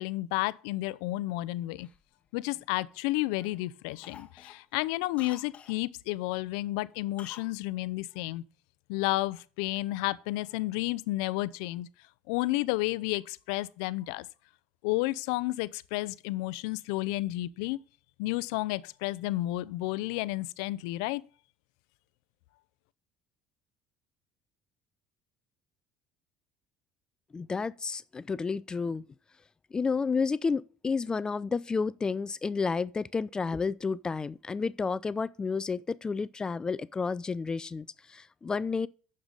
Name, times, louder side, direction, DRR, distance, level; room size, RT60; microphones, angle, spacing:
voice 1, 0.0-1.9 2.3-8.4 8.9-11.9 12.3-14.3 14.8-17.8 18.2-21.2, left 18 dB, 85° left, 0.5 m, -31 dB
Cough, 1.8-3.0 3.4-3.6 4.0-5.8 7.2-7.5 7.8-7.9, left 8 dB, 40° left, 1.0 m, -51 dB
voice 2, 27.3-29.0 29.7-38.9, left 4 dB, 25° left, 0.4 m, -31 dB
9.5 x 6.7 x 3.9 m
supercardioid pair, 90°, 3 cm